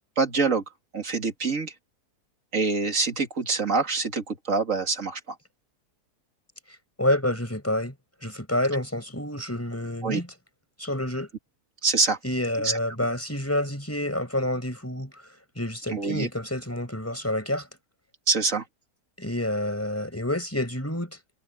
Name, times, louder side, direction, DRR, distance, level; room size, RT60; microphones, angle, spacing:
voice 1, 0.2-0.6 0.9-1.7 2.5-5.4 10.0-10.2 11.8-12.2 12.6-12.8 15.9-16.3 18.3-18.6, right 4 dB, 55° right, 2.4 m, -25 dB
voice 2, 7.0-7.9 8.2-10.3 10.8-11.3 12.2-15.1 15.6-17.7 19.2-21.2, left 1 dB, 10° left, 4.7 m, -28 dB
omnidirectional pair, 1.7 m